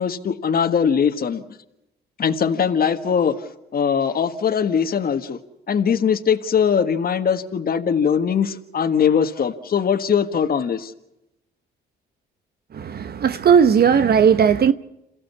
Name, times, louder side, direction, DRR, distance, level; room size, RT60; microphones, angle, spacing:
voice 1, 0.0-1.6 2.2-5.4 5.7-10.9, left 7 dB, 50° left, 1.6 m, -21 dB
voice 2, 12.7-14.7, right 7 dB, 50° right, 0.9 m, -16 dB
28.0 x 15.5 x 8.4 m
cardioid pair, 90°, 20 cm